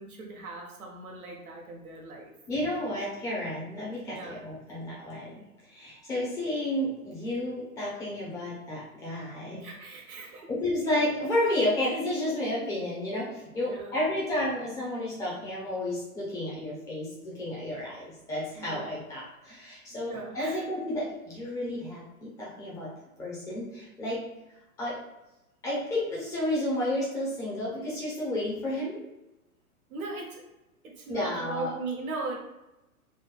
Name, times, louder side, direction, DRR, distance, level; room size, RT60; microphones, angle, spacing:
voice 1, 0.0-2.3 2.6-2.8 4.1-4.4 9.5-10.5 13.6-14.0 18.5-18.9 19.9-20.6 29.9-30.4 30.8-32.4, right 3 dB, 75° right, -1 dB, 0.9 m, -39 dB
voice 2, 2.5-9.6 10.5-22.9 23.2-24.2 24.8-25.0 25.6-29.0 31.1-31.7, left 1 dB, 10° left, -7 dB, 0.4 m, -31 dB
3.0 x 2.1 x 2.3 m, 0.97 s
figure-of-eight pair, 110°, 44 cm